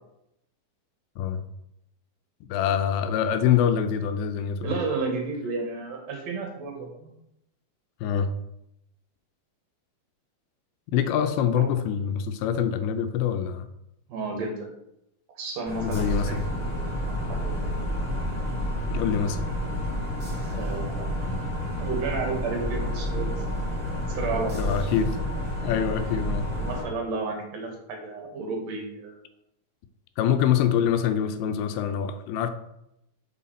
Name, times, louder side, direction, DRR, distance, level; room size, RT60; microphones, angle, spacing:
voice 1, 2.5-4.7 8.0-8.3 10.9-13.7 15.8-16.4 18.9-19.4 24.5-25.2 25.6-26.5 30.2-32.5, left 8 dB, 85° left, 8 dB, 2.4 m, -25 dB
voice 2, 4.6-7.1 11.5-11.7 14.1-14.7 15.4-16.8 17.0-17.9 20.5-21.1 21.8-23.3 24.1-24.9 26.5-29.2, right 3 dB, 70° right, 2 dB, 1.6 m, -32 dB
sound 1, 15.6-26.8, equal, 15° right, 1.3 m, -29 dB
5.7 x 5.5 x 4.2 m, 0.81 s
omnidirectional pair, 4.3 m